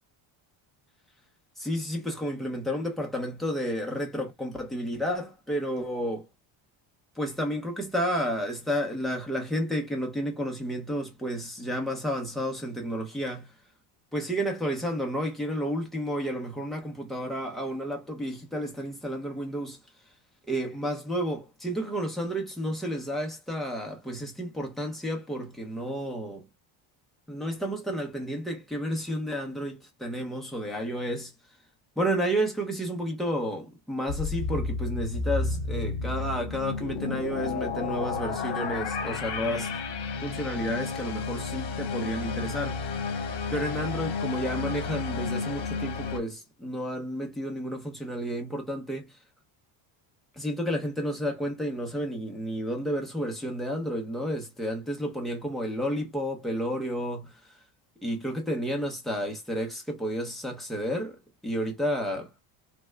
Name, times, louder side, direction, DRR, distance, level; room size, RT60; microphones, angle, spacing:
voice 1, 1.6-6.3 7.2-13.5 14.1-19.8 20.5-26.5 27.3-31.3 32.0-39.8 40.2-43.0 43.5-49.2 50.3-57.6 58.0-62.3, equal, ahead, 0.5 m, -31 dB
sound 1, 34.1-46.2, left 4 dB, 55° left, 1.1 m, -32 dB
3.2 x 2.0 x 3.3 m
cardioid pair, 180°, 49 cm